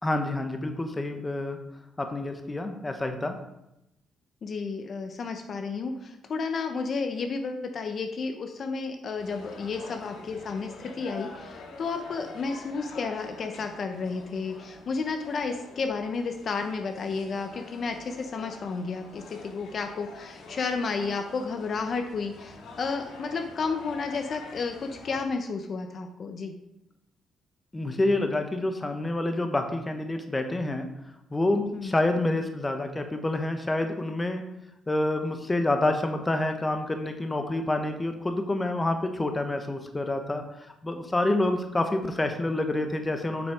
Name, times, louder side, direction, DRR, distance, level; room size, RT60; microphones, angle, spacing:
voice 1, 0.0-1.6 2.0-3.4 27.7-30.9 31.3-34.4 34.9-43.5, left 2 dB, 20° left, 5 dB, 1.1 m, -28 dB
voice 2, 4.4-26.5 31.7-31.9, left 4 dB, 50° left, 6 dB, 0.9 m, -32 dB
sound 1, 9.2-25.2, left 3 dB, 80° left, 1.7 m, -46 dB
8.0 x 5.9 x 5.0 m, 0.86 s
cardioid pair, 90°, 0 cm